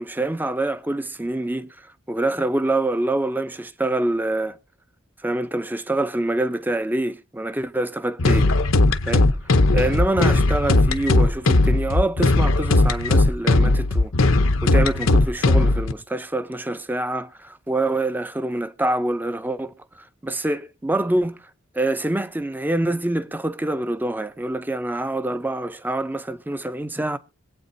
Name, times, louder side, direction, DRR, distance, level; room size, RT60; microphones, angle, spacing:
voice 1, 0.0-1.7 2.1-4.6 5.2-8.5 9.1-9.3 9.7-19.7 20.2-21.4 21.7-27.2, right 1 dB, 10° right, 0.6 m, -25 dB
sound 1, 8.2-15.9, left 2 dB, 70° left, 0.8 m, -18 dB
25.0 x 8.6 x 2.7 m
head